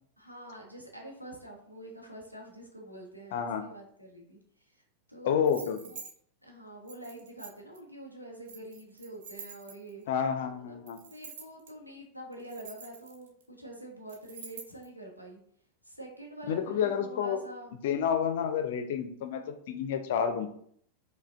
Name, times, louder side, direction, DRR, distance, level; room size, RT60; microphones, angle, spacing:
voice 1, 0.2-4.8 5.1-6.0 6.4-10.0 10.4-15.4 15.8-17.7, right 1 dB, 90° right, 0 dB, 0.8 m, -46 dB
voice 2, 3.3-3.6 5.2-5.8 10.1-11.0 16.5-17.4 17.8-20.5, left 7 dB, 55° left, 7 dB, 0.4 m, -29 dB
sound 1, 5.4-6.1 6.9-7.8 8.5-10.0 10.9-11.7 12.3-13.4 14.1-14.9, right 5 dB, 55° right, 0.6 m, -47 dB
4.8 x 2.2 x 2.4 m, 0.64 s
figure-of-eight pair, 90°, 0 cm